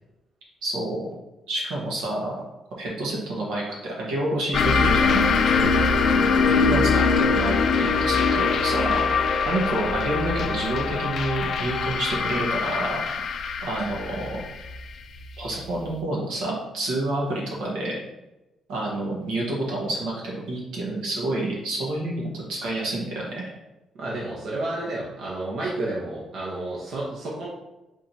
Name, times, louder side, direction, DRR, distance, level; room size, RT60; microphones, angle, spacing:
voice 1, 0.6-1.1 1.5-2.3 2.8-5.2 6.4-9.0 9.4-13.0 13.6-14.4 15.4-18.0 18.7-23.5, right 1 dB, 90° right, -4 dB, 1.5 m, -28 dB
sound 1, 4.5-15.7, left 4 dB, 60° left, 0.4 m, -23 dB
voice 2, 23.9-27.5, right 2 dB, 70° right, -5 dB, 1.1 m, -31 dB
5.0 x 3.7 x 2.9 m, 1.0 s
cardioid pair, 90°, 0 cm